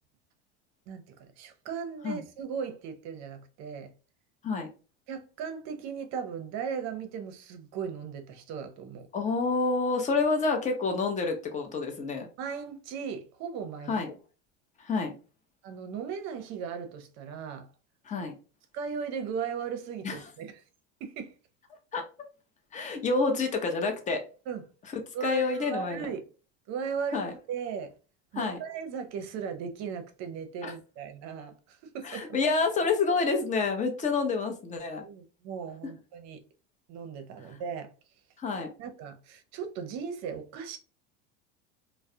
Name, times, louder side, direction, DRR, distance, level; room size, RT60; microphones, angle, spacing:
voice 1, 0.9-3.9 5.1-9.1 12.4-14.0 15.6-17.7 18.7-20.5 21.0-21.3 24.5-24.6 25.1-26.2 26.7-27.9 28.3-32.4 35.0-36.4 36.9-37.9 38.8-40.8, right 6 dB, 50° right, 0.6 m, -37 dB
voice 2, 9.1-12.3 13.9-14.1 14.8-15.1 18.1-18.3 20.0-20.2 21.9-22.0 22.7-24.2 25.2-26.1 27.1-27.3 28.3-28.6 30.6-30.7 32.0-35.0 38.4-38.7, left 4 dB, 20° left, 0.6 m, -28 dB
2.2 x 2.1 x 2.6 m
supercardioid pair, 115°, 33 cm